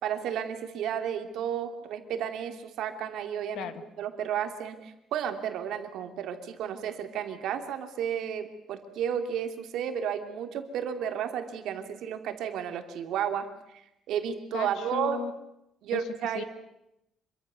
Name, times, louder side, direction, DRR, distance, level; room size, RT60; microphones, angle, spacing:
voice 1, 0.0-3.7 4.0-13.5 14.1-15.2 15.8-16.4, right 9 dB, 65° right, 7 dB, 2.7 m, -32 dB
voice 2, 14.5-15.3 15.9-16.1 16.3-16.4, left 10 dB, 75° left, 11 dB, 1.6 m, -36 dB
26.0 x 23.5 x 6.9 m, 0.84 s
cardioid pair, 175°, 0 cm